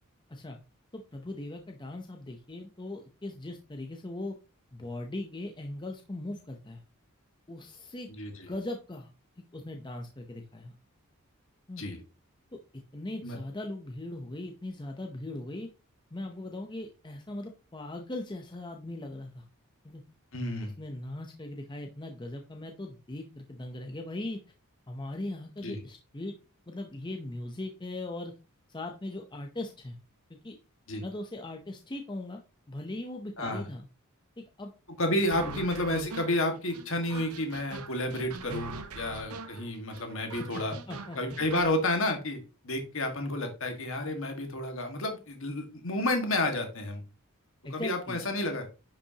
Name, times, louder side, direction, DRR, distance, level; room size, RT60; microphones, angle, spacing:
voice 1, 0.9-4.4 4.7-6.8 7.5-8.1 8.5-9.1 9.5-10.7 11.7-11.8 12.5-12.6 12.9-15.7 16.1-19.4 19.8-20.0 20.6-24.4 24.9-26.4 26.7-28.3 28.7-30.0 30.3-30.6 31.0-32.4 32.7-33.9 34.4-34.7 35.4-35.6 40.4-41.2 47.6-48.2, left 1 dB, 20° left, 3 dB, 0.7 m, -39 dB
voice 2, 8.1-8.5 11.8-12.0 13.2-13.4 20.3-20.7 25.6-25.8 30.9-31.0 33.4-33.7 35.0-40.7 41.1-42.4 42.6-47.0 47.7-48.7, left 1 dB, 60° left, 4 dB, 1.8 m, -31 dB
sound 1, 35.3-41.7, right 3 dB, 75° right, 0.8 m, -43 dB
10.0 x 5.7 x 2.9 m, 0.32 s
head